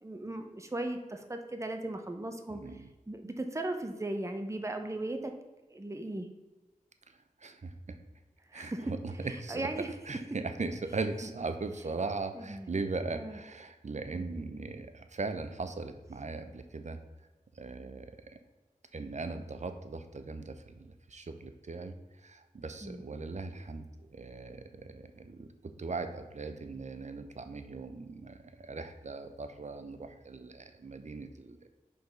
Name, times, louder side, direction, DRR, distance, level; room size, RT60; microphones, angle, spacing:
voice 1, 0.0-2.6 3.1-5.3 5.7-6.3 8.5-8.8 9.5-9.9 12.4-12.7 13.1-13.4 14.1-14.3 22.8-23.0, right 1 dB, 20° right, 5 dB, 0.7 m, -37 dB
voice 2, 2.5-2.9 7.1-8.0 8.5-9.7 10.0-17.0 17.5-18.4 18.9-31.6, right 3 dB, 55° right, 8 dB, 0.7 m, -39 dB
5.1 x 4.0 x 5.1 m, 1.2 s
wide cardioid pair, 50°, 14 cm